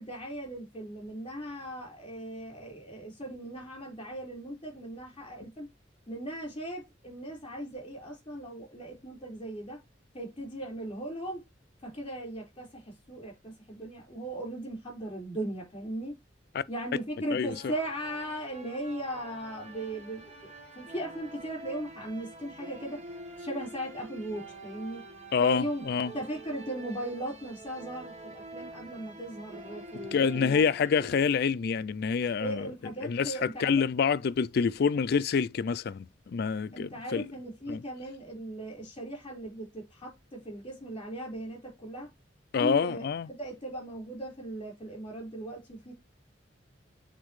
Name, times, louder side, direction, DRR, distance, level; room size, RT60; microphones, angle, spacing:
voice 1, 0.0-5.7 6.1-9.8 10.1-11.4 11.8-16.1 16.7-20.2 20.7-23.0 23.4-25.0 25.4-25.8 26.1-30.6 32.4-33.8 36.7-42.1 42.6-45.9, right 1 dB, 30° left, 4.4 m, -38 dB
sound 1, 17.4-31.2, right 1 dB, 35° right, 1.3 m, -46 dB
voice 2, 25.3-26.1 30.1-32.7 33.0-33.3 33.6-36.1 36.3-37.2 37.7-37.8 42.5-43.3, left 6 dB, 55° left, 0.4 m, -27 dB
8.2 x 4.0 x 3.1 m
head